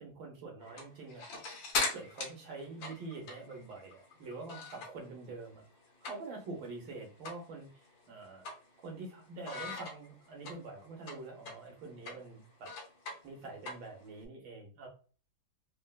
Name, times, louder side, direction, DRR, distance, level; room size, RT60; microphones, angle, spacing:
voice 1, 0.0-5.6 6.0-8.4 8.8-12.7 13.2-14.9, right 3 dB, 85° right, 1 dB, 1.7 m, -46 dB
sound 1, 0.6-5.1 5.4-6.5 6.8-6.9 7.2-7.5 7.8-9.1 9.4-14.2, left 3 dB, 85° left, 1.6 m, -40 dB
4.3 x 2.1 x 2.3 m, 0.38 s
omnidirectional pair, 2.0 m